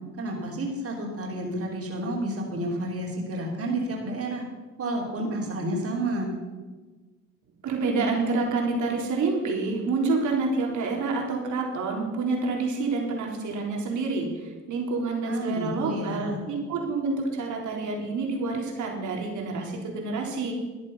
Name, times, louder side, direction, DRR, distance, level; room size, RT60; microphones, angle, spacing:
voice 1, 0.2-4.4 4.8-6.3 15.2-16.4, right 1 dB, 50° right, -1 dB, 3.2 m, -30 dB
voice 2, 7.6-20.5, right 3 dB, 75° right, 0 dB, 3.5 m, -28 dB
13.5 x 10.5 x 5.5 m, 1.3 s
cardioid pair, 90°, 30 cm